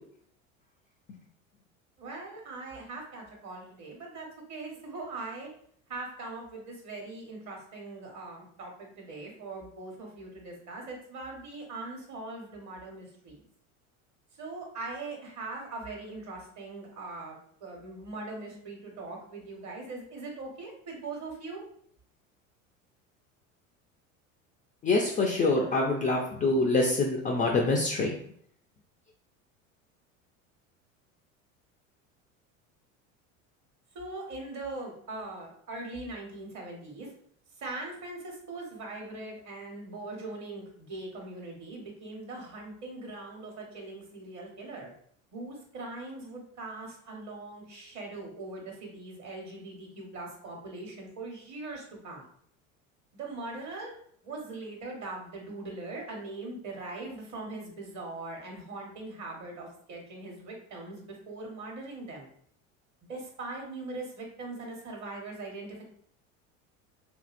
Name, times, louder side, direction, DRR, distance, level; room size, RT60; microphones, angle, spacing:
voice 1, 2.0-5.5 5.9-13.5 14.4-21.6 33.9-37.1 37.6-44.9 45.3-52.3 53.1-53.9 54.2-62.3 63.1-65.9, right 2 dB, 45° right, 0 dB, 1.2 m, -41 dB
voice 2, 24.8-28.1, left 2 dB, 20° left, 0 dB, 0.3 m, -25 dB
2.8 x 2.6 x 2.5 m, 0.62 s
hypercardioid pair, 85°, 41 cm